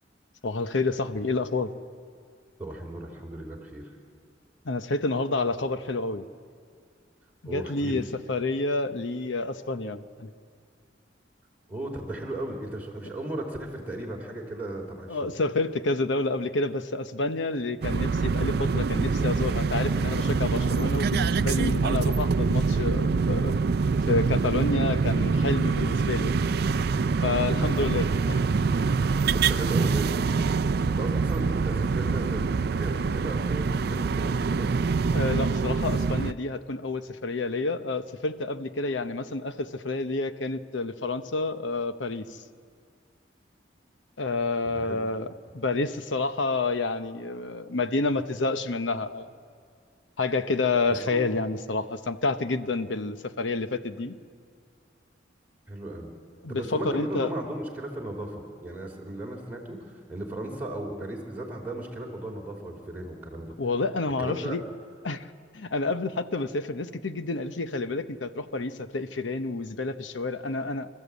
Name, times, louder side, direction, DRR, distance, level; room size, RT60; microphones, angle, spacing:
voice 1, 0.4-1.7 4.6-6.3 7.4-10.3 15.1-23.5 24.1-26.5 27.2-28.4 35.1-42.4 44.2-49.3 50.2-54.2 56.4-57.3 63.6-64.6 65.0-65.3 65.5-70.9, left 3 dB, 85° left, 10 dB, 0.9 m, -29 dB
voice 2, 2.6-3.9 7.4-8.0 11.7-15.3 27.5-27.9 29.3-30.3 30.6-32.4 32.7-34.9 44.6-45.0 51.1-51.2 55.7-56.1 56.5-63.5 64.2-64.6, right 1 dB, 10° right, -2 dB, 3.2 m, -36 dB
sound 1, 17.8-36.3, right 4 dB, 60° right, 0.4 m, -25 dB
25.5 x 13.0 x 8.3 m, 2.2 s
head